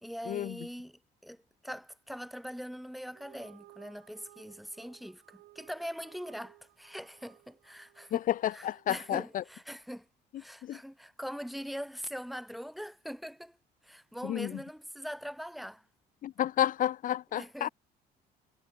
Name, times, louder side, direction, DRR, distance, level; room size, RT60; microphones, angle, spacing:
voice 1, 0.0-8.2 8.5-10.1 10.4-13.6 13.8-15.8 17.3-17.7, equal, ahead, 2.0 m, -42 dB
sound 1, 3.1-9.6, right 17 dB, 80° right, 5.3 m, -59 dB
voice 2, 8.1-9.4 10.6-10.8 14.2-14.5 16.2-17.7, left 12 dB, 50° left, 0.7 m, -31 dB
cardioid pair, 130°, 18 cm